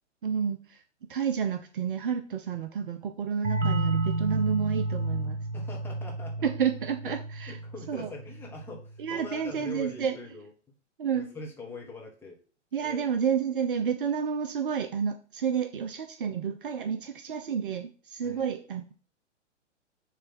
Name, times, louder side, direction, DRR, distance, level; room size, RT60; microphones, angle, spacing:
voice 1, 0.2-0.8 1.1-5.4 6.4-7.6 7.9-8.1 9.0-10.2 11.0-11.3 12.7-18.9, right 7 dB, 45° right, 7 dB, 0.7 m, -30 dB
sound 1, 3.4-8.9, right 2 dB, 75° right, 0.8 m, -31 dB
voice 2, 5.5-6.5 7.0-7.1 7.5-10.5 11.1-12.4 12.8-13.0 18.2-18.4, left 3 dB, 5° left, -2 dB, 1.4 m, -42 dB
6.7 x 3.4 x 6.0 m, 0.39 s
figure-of-eight pair, 115°, 36 cm